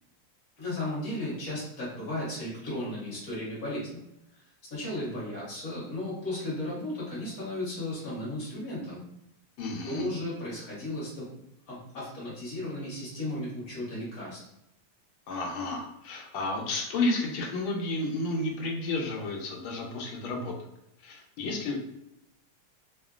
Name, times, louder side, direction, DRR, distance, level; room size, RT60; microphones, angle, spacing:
voice 1, 0.6-4.0 4.7-9.0 9.8-11.4 11.7-14.4, left 1 dB, 50° left, -7 dB, 1.5 m, -35 dB
voice 2, 9.6-10.1 15.3-20.5 21.0-21.8, left 2 dB, 85° left, 0 dB, 1.5 m, -31 dB
3.5 x 2.1 x 2.4 m, 0.84 s
omnidirectional pair, 2.2 m